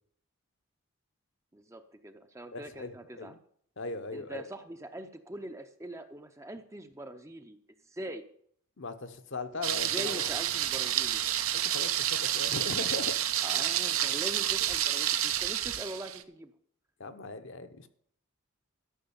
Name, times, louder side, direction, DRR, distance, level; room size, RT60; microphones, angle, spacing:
voice 1, 1.5-3.4 4.1-7.6 7.8-8.2 9.7-11.2 13.4-16.5, right 1 dB, 15° right, 7 dB, 0.6 m, -43 dB
voice 2, 2.5-3.4 3.8-4.4 8.8-10.3 11.5-13.2 13.5-13.6 17.0-17.9, left 2 dB, 55° left, 9 dB, 0.9 m, -39 dB
Thunder, 9.6-16.2, right 11 dB, 70° right, 0.7 m, -29 dB
13.0 x 6.1 x 7.0 m, 0.64 s
head